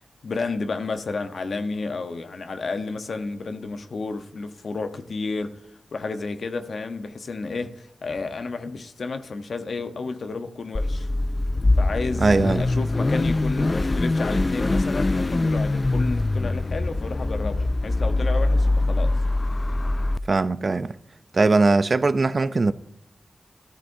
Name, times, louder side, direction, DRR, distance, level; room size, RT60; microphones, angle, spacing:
voice 1, 0.2-11.1 11.8-19.2, left 3 dB, 75° left, 0.9 m, -31 dB
Car / Idling / Accelerating revving vroom, 10.7-20.2, left 2 dB, 35° left, 0.3 m, -23 dB
voice 2, 12.2-12.6 20.3-21.0 21.3-22.7, right 3 dB, 50° right, 0.5 m, -20 dB
14.0 x 13.0 x 2.7 m
wide cardioid pair, 85°, 0 cm